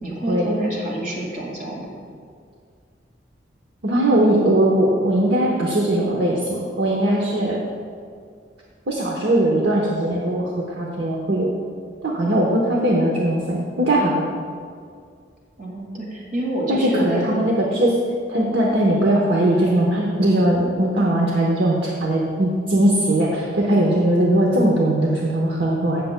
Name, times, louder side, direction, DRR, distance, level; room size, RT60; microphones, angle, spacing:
voice 1, 0.0-1.9 15.6-17.3, right 1 dB, 50° right, -2 dB, 2.0 m, -27 dB
voice 2, 3.8-7.6 8.9-10.5 10.8-11.5 12.0-14.2 16.7-17.9 18.3-26.0, right 1 dB, 65° right, -2 dB, 0.9 m, -19 dB
16.0 x 6.9 x 2.2 m, 2.2 s
head